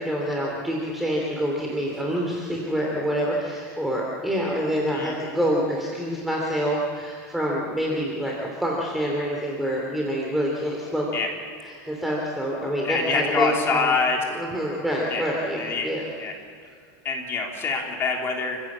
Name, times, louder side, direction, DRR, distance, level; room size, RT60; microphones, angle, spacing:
voice 1, 0.0-11.1 11.6-13.9 14.3-16.0, equal, ahead, -2 dB, 2.9 m, -27 dB
voice 2, 4.9-5.4 11.1-11.3 12.8-14.2 15.1-15.2 15.6-15.9 16.2-16.3 17.0-18.6, left 4 dB, 25° left, 1 dB, 3.4 m, -25 dB
29.0 x 16.0 x 7.4 m, 2.2 s
supercardioid pair, 150°, 9 cm